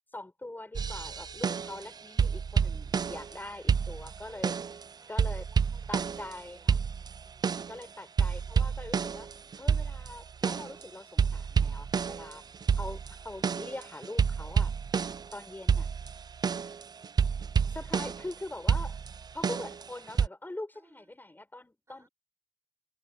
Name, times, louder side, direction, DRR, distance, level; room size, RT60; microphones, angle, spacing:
voice 1, 0.1-4.5 5.1-5.5 5.9-6.8 7.7-9.3 9.6-12.4 12.8-14.7 15.3-15.9 17.7-19.0 19.3-22.1, left 2 dB, 20° left, 7.6 m, -43 dB
sound 1, 0.7-1.9 2.2-3.4 3.7-4.8 5.2-6.4 6.7-7.8 8.2-10.8 11.2-15.4 15.7-18.3 18.7-20.3, right 6 dB, 50° right, 0.4 m, -29 dB
voice 2, 4.1-6.0 6.4-6.8 7.2-7.6 20.7-21.1 21.9-22.1, right 2 dB, 30° right, 5.3 m, -63 dB
cardioid pair, 55°, 9 cm